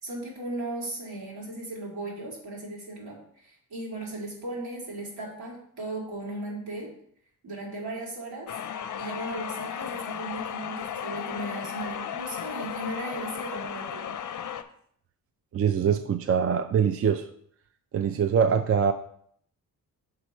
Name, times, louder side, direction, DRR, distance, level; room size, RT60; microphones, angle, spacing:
voice 1, 0.0-6.9 7.4-8.5 8.9-14.2, right 2 dB, 70° right, -3 dB, 2.8 m, -37 dB
sound 1, 8.5-14.6, left 9 dB, 50° left, 0.6 m, -35 dB
voice 2, 15.5-17.3 17.9-18.9, right 7 dB, 40° right, 9 dB, 0.4 m, -23 dB
6.0 x 4.7 x 4.3 m, 0.64 s
cardioid pair, 90°, 38 cm